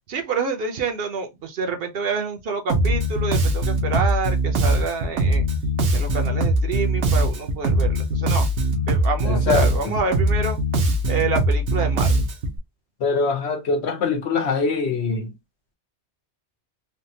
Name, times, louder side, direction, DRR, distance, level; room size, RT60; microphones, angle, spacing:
voice 1, 0.1-5.5 5.9-8.5 8.9-10.6 11.0-12.2, right 4 dB, 60° right, 0.8 m, -27 dB
Bass guitar, 2.7-12.6, right 1 dB, 85° right, 1.1 m, -21 dB
voice 2, 9.2-9.9 13.0-15.3, left 4 dB, 75° left, 1.0 m, -23 dB
3.5 x 2.2 x 2.7 m
omnidirectional pair, 1.1 m